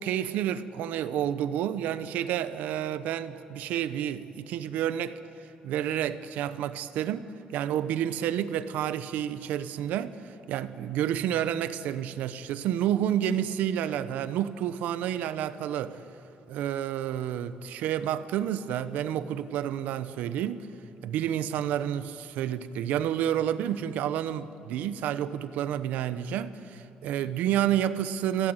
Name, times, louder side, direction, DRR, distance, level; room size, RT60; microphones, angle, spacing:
voice 1, 0.0-5.2 5.6-10.2 10.5-16.0 16.5-20.7 21.0-28.5, right 10 dB, 90° right, 13 dB, 0.9 m, -30 dB
27.5 x 16.5 x 8.0 m, 2.8 s
cardioid pair, 140°, 3 cm